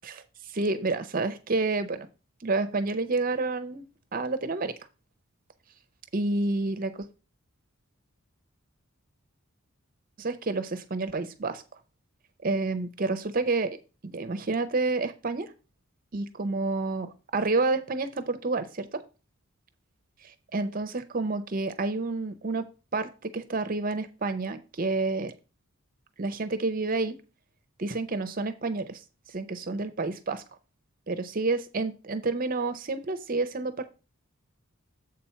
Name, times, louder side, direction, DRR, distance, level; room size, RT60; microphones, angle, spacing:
voice 1, 0.0-2.1 2.4-3.8 4.1-4.7 6.1-7.1 10.2-11.6 12.4-13.8 14.0-15.5 16.1-19.0 20.2-25.3 26.2-27.2 27.8-29.0 29.3-30.4 31.1-33.9, right 3 dB, 40° right, 10 dB, 0.6 m, -29 dB
7.6 x 4.3 x 5.6 m, 0.32 s
head